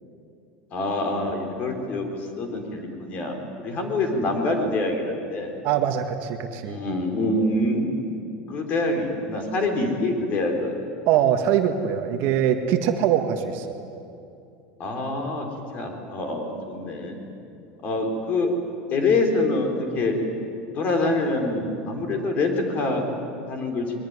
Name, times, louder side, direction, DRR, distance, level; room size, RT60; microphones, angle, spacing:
voice 1, 0.7-5.5 6.6-8.2 8.5-10.8 14.8-15.5 15.7-17.1 17.8-18.5 18.9-20.1 20.7-23.0 23.5-23.9, left 2 dB, 30° left, 4 dB, 4.1 m, -25 dB
voice 2, 5.6-6.8 11.1-13.8, right 9 dB, 45° right, 6 dB, 1.7 m, -23 dB
22.5 x 22.5 x 9.8 m, 2.7 s
cardioid pair, 170°, 5 cm